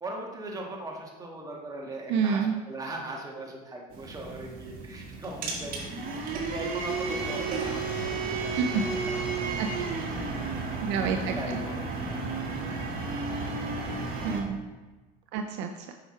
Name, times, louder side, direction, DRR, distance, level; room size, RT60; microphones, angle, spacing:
voice 1, 0.0-2.4 2.7-5.9 6.3-9.2 9.6-9.9 10.7-10.9 11.3-12.5, right 1 dB, 15° right, -1 dB, 1.8 m, -40 dB
voice 2, 2.1-2.5 8.6-8.8 9.6-9.9 10.8-11.6 14.2-14.6 15.3-15.9, right 6 dB, 60° right, 5 dB, 0.6 m, -29 dB
sound 1, 3.9-14.4, right 3 dB, 45° right, 1.8 m, -33 dB
sound 2, 7.7-13.5, left 2 dB, 80° left, 1.5 m, -52 dB
7.7 x 5.8 x 3.3 m, 1.2 s
supercardioid pair, 95°, 20 cm